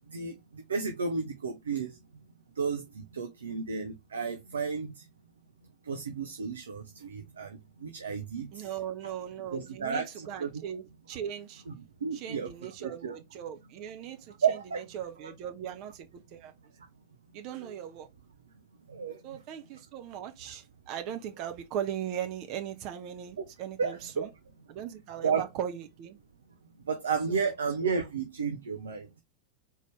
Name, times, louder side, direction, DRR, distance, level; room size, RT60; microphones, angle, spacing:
voice 1, 0.7-1.9 2.6-4.9 5.9-7.5 7.8-8.5 9.0-9.1 9.5-10.6 11.7-11.8 12.0-13.1 14.4-14.8 15.2-15.3 17.6-17.7 18.9-19.2 23.8-24.3 25.2-25.5 26.9-29.1, right 5 dB, 70° right, 0.7 m, -32 dB
voice 2, 8.5-11.6 12.1-14.3 14.9-16.5 17.3-18.1 19.2-24.3 24.7-26.2, right 9 dB, 40° right, 0.9 m, -38 dB
4.1 x 3.7 x 3.1 m
figure-of-eight pair, 90°, 0 cm